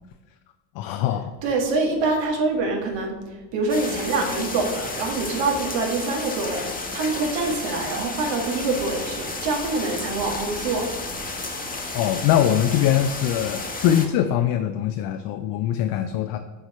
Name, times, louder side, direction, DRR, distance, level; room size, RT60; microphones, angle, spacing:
voice 1, 0.8-1.3 11.9-16.4, left 10 dB, 60° left, 7 dB, 0.5 m, -22 dB
voice 2, 1.4-6.6 6.9-10.9, right 3 dB, 60° right, 1 dB, 1.7 m, -25 dB
sound 1, 3.7-14.1, left 3 dB, 15° left, 1.1 m, -32 dB
6.4 x 3.6 x 4.2 m, 1.3 s
supercardioid pair, 85°, 49 cm